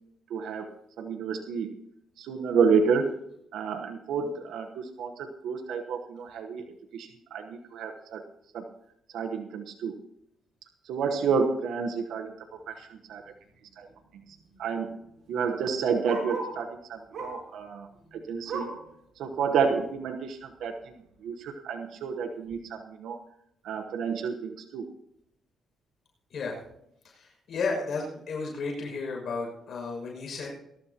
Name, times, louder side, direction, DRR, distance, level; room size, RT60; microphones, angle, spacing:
voice 1, 0.3-1.8 2.2-3.1 3.5-6.7 6.9-8.2 8.5-8.7 9.1-10.0 10.8-13.3 13.8-13.9 14.6-14.9 15.3-18.8 19.2-20.9 21.2-23.2 23.6-24.9, right 5 dB, 80° right, 4 dB, 1.1 m, -30 dB
Bark, 12.9-13.2 13.5-13.6 13.8-16.6 17.1-17.5 17.9-18.9 19.4-19.5 19.8-19.9 20.6-20.7, right 3 dB, 60° right, 5.5 m, -38 dB
voice 2, 27.0-30.6, left 4 dB, 60° left, 0 dB, 6.3 m, -33 dB
21.5 x 12.0 x 2.9 m, 0.77 s
cardioid pair, 90°, 0 cm